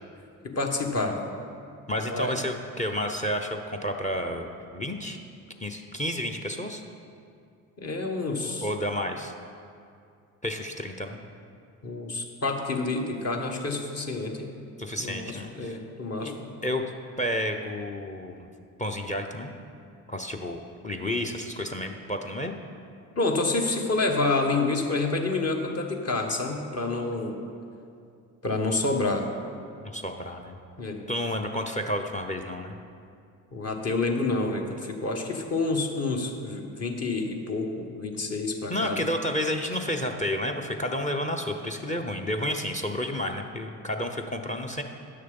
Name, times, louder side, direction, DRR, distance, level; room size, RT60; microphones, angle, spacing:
voice 1, 0.4-1.2 2.1-2.4 7.8-8.7 11.8-14.5 15.0-16.3 23.2-27.4 28.4-29.3 30.8-31.0 33.5-39.1, left 3 dB, 40° left, 2 dB, 1.4 m, -28 dB
voice 2, 1.9-5.2 5.6-6.8 8.6-9.3 10.4-11.2 14.8-15.8 16.2-16.3 16.6-16.8 17.2-18.5 18.8-19.5 20.1-22.6 29.8-30.6 31.1-32.8 38.7-44.8, left 1 dB, 20° left, 5 dB, 0.8 m, -31 dB
9.5 x 6.6 x 5.4 m, 2.4 s
hypercardioid pair, 60°, 40 cm